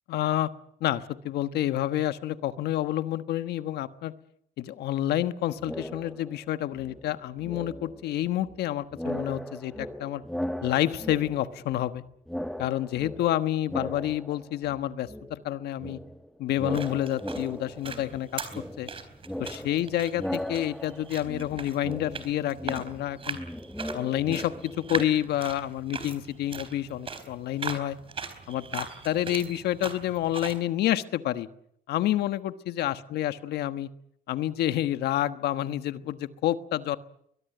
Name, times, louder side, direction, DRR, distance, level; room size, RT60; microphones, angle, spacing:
voice 1, 0.1-0.5 0.8-4.1 4.6-10.2 10.6-12.0 12.6-16.0 16.4-18.9 19.4-23.4 23.9-28.0 28.5-31.5 31.9-33.9 34.3-37.0, left 13 dB, 75° left, 11 dB, 1.4 m, -29 dB
sound 1, 5.6-6.5 6.7-8.7 8.9-12.0 12.3-14.8 15.1-25.0, equal, ahead, 1.2 m, -38 dB
sound 2, 16.5-30.6, right 5 dB, 35° right, 4.2 m, -40 dB
22.5 x 22.5 x 8.0 m, 0.71 s
cardioid pair, 110°, 17 cm